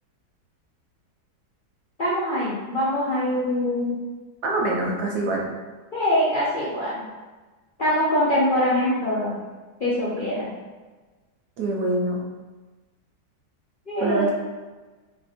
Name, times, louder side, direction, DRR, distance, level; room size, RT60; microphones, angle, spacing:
voice 1, 2.0-4.0 5.9-6.9 7.8-9.4 9.8-10.5 13.9-14.3, left 1 dB, 45° left, -10 dB, 0.6 m, -23 dB
voice 2, 4.4-5.5 11.6-12.2 14.0-14.3, right 2 dB, 70° right, -2 dB, 1.2 m, -25 dB
3.4 x 2.5 x 4.1 m, 1.3 s
omnidirectional pair, 1.9 m